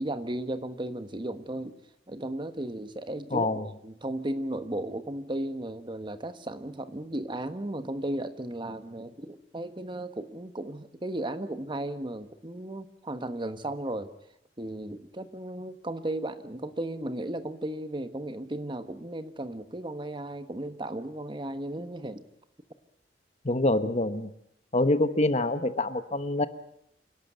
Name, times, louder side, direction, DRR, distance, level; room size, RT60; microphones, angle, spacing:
voice 1, 0.0-1.7 2.1-3.5 3.8-14.1 14.6-22.2, right 1 dB, 30° right, 10 dB, 1.3 m, -35 dB
voice 2, 3.3-3.7 23.4-24.3 24.7-26.5, left 2 dB, 40° left, 11 dB, 1.1 m, -25 dB
28.0 x 12.0 x 9.2 m, 0.75 s
head